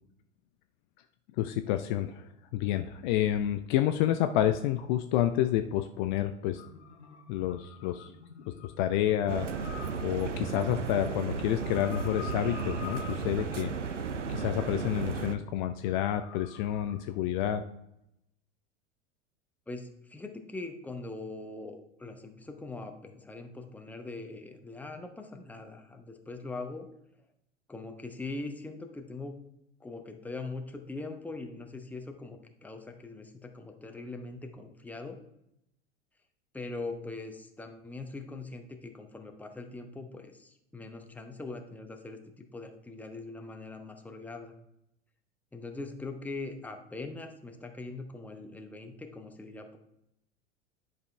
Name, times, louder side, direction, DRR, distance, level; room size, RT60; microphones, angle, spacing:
voice 1, 1.4-6.6 7.3-8.1 8.6-9.5 10.0-13.7 14.3-17.6, left 12 dB, 45° left, 8 dB, 0.5 m, -29 dB
sound 1, 6.5-17.0, left 7 dB, 70° left, 1.1 m, -49 dB
sound 2, 9.3-15.4, right 5 dB, 85° right, 0.6 m, -34 dB
voice 2, 19.7-26.9 27.7-29.4 29.8-35.2 36.5-44.5 45.5-49.8, left 3 dB, 5° left, 5 dB, 0.8 m, -42 dB
10.5 x 5.2 x 3.3 m, 0.81 s
figure-of-eight pair, 85°, 35 cm